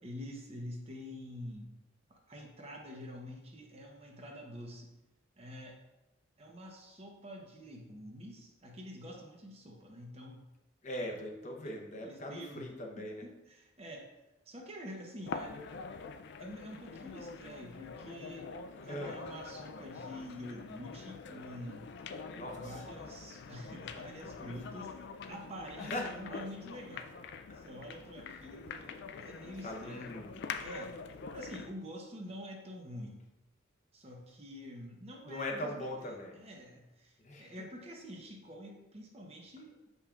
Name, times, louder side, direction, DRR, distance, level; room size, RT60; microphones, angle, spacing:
voice 1, 0.0-1.8 2.1-5.0 5.4-5.8 6.4-10.5 11.6-11.7 12.0-12.7 13.0-14.1 14.5-15.6 16.4-18.5 18.8-21.9 22.6-27.2 27.5-30.1 30.6-30.9 31.3-33.2 33.9-39.8, equal, 30° right, 1 dB, 0.8 m, -47 dB
voice 2, 10.8-13.3 18.8-19.2 22.3-22.8 25.8-26.1 27.5-27.7 29.6-30.4 35.3-36.4 37.2-37.5, left 1 dB, 35° left, 1 dB, 0.7 m, -40 dB
sound 1, 15.3-31.8, left 5 dB, 55° left, 0.3 m, -45 dB
7.3 x 5.4 x 2.4 m, 1.0 s
head